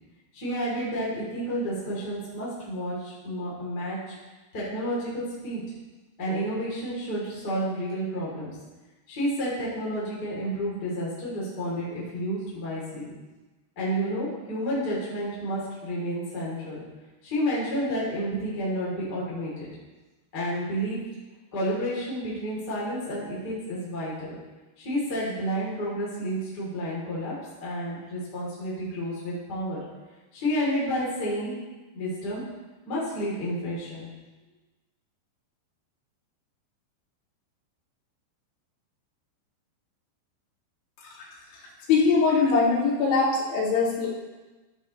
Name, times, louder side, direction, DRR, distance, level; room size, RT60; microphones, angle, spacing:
voice 1, 0.3-4.1 4.5-5.6 6.2-8.5 9.1-13.1 13.7-16.8 17.2-19.7 20.3-21.0 21.5-24.4 24.8-27.3 27.6-29.8 30.3-31.5 31.9-32.4 32.9-34.1, equal, 25° left, -7 dB, 3.0 m, -30 dB
voice 2, 41.9-44.1, left 4 dB, 75° left, -6 dB, 4.7 m, -22 dB
15.0 x 8.0 x 3.2 m, 1.2 s
omnidirectional pair, 5.5 m